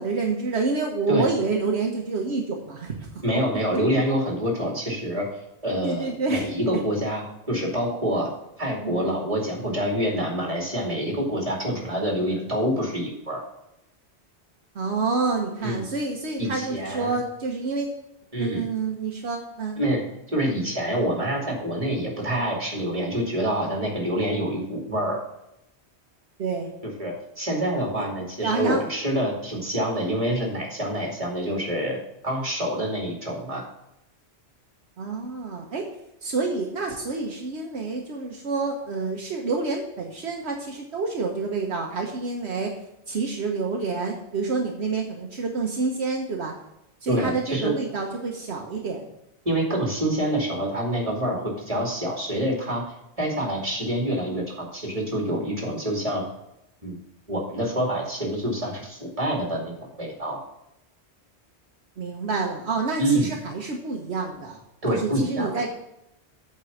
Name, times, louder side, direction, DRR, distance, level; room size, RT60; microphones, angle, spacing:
voice 1, 0.0-3.1 5.8-6.8 8.8-9.1 14.7-17.9 18.4-19.8 26.4-26.7 28.4-28.8 35.0-35.9 36.2-42.7 43.1-46.5 47.0-49.1 62.0-64.6 64.9-65.7, right 4 dB, 75° right, 1 dB, 1.3 m, -28 dB
voice 2, 3.2-5.3 5.6-8.3 8.6-13.4 15.6-15.8 16.4-17.2 18.3-18.6 19.8-20.0 20.3-25.2 27.0-32.0 32.2-33.6 47.1-47.7 49.4-52.8 53.2-56.3 56.8-57.0 57.3-60.4 63.0-63.3 64.8-65.7, equal, 30° right, 0 dB, 2.7 m, -26 dB
8.2 x 4.6 x 7.0 m, 0.83 s
omnidirectional pair, 1.1 m